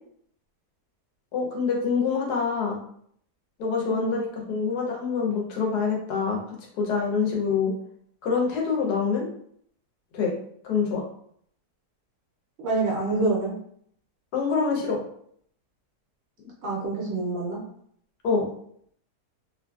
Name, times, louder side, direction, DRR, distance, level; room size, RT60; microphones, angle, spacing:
voice 1, 1.3-2.8 3.6-6.4 6.8-7.7 8.2-9.3 10.1-10.3 10.6-11.0 14.3-15.0 18.2-18.5, left 5 dB, 85° left, -1 dB, 1.3 m, -25 dB
voice 2, 3.9-4.2 12.6-13.5 16.6-17.6, right 3 dB, 70° right, -4 dB, 0.6 m, -26 dB
2.8 x 2.5 x 2.3 m, 0.65 s
omnidirectional pair, 1.7 m